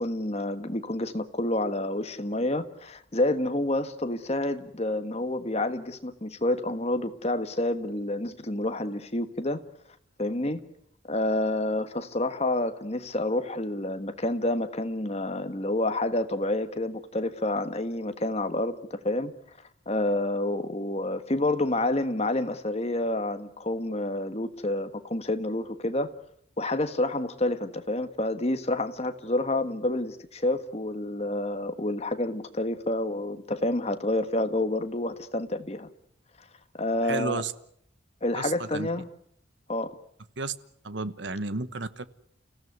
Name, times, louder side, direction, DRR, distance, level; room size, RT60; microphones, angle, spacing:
voice 1, 0.0-9.6 10.2-10.6 11.1-19.3 19.9-26.1 26.6-35.9 36.8-37.4 38.2-39.0 39.7-40.0, left 1 dB, 30° left, 1.5 m, -28 dB
voice 2, 37.0-37.5 38.3-38.9 40.4-40.5 40.8-42.0, right 3 dB, 65° right, 1.1 m, -32 dB
30.0 x 16.0 x 9.5 m
head